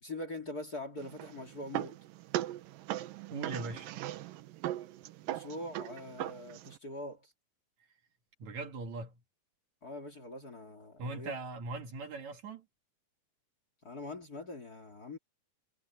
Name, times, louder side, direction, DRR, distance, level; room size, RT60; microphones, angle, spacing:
voice 1, 0.0-2.0 5.3-7.3 9.8-11.3 13.8-15.2, left 2 dB, 30° left, 2.7 m, -43 dB
sound 1, 1.0-6.8, right 14 dB, 85° right, 2.6 m, -39 dB
voice 2, 3.3-3.9 8.4-9.2 11.0-12.6, right 3 dB, 60° right, 3.0 m, -40 dB
omnidirectional pair, 4.0 m